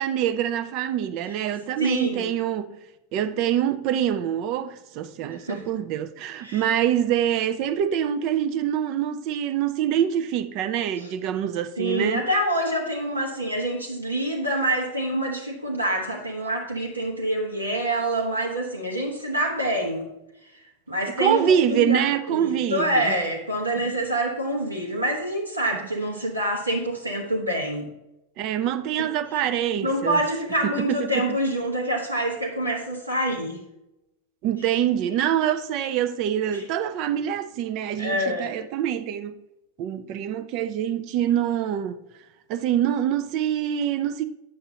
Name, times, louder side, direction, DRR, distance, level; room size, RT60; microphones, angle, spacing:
voice 1, 0.0-2.7 3.1-12.3 21.2-23.1 23.8-23.9 28.4-30.2 30.6-31.4 34.4-39.3 39.8-42.0 42.5-44.2, right 10 dB, 40° right, 0.5 m, -25 dB
voice 2, 1.8-2.3 5.3-5.6 6.4-6.8 11.8-20.1 20.9-27.9 29.0-29.1 29.3-29.4 29.8-33.6 36.5-36.6 38.0-38.5, right 1 dB, 85° right, 1.3 m, -26 dB
9.1 x 6.7 x 2.8 m
figure-of-eight pair, 90°, 0 cm